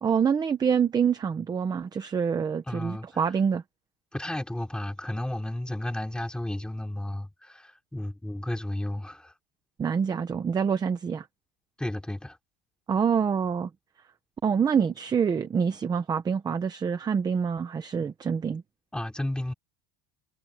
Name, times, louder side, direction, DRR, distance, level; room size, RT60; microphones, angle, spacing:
voice 1, 0.0-3.6 9.8-11.3 12.9-13.7 14.4-18.6, right 6 dB, 15° right, 0.8 m, -26 dB
voice 2, 2.7-3.1 4.1-9.3 11.8-12.4 18.9-19.5, left 1 dB, 5° left, 3.7 m, -33 dB
cardioid pair, 175°, 29 cm